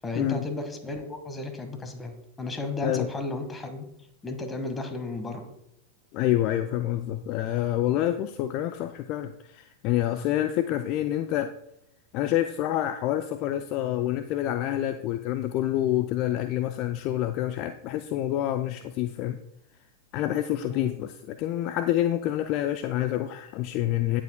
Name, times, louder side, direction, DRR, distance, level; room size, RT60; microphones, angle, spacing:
voice 1, 0.0-3.9 4.2-5.5 20.7-20.9, left 2 dB, 15° left, 7 dB, 1.5 m, -34 dB
voice 2, 6.1-11.5 12.1-19.4 20.1-24.2, left 13 dB, 40° left, 10 dB, 0.4 m, -27 dB
17.0 x 7.5 x 2.2 m, 0.79 s
figure-of-eight pair, 90°, 0 cm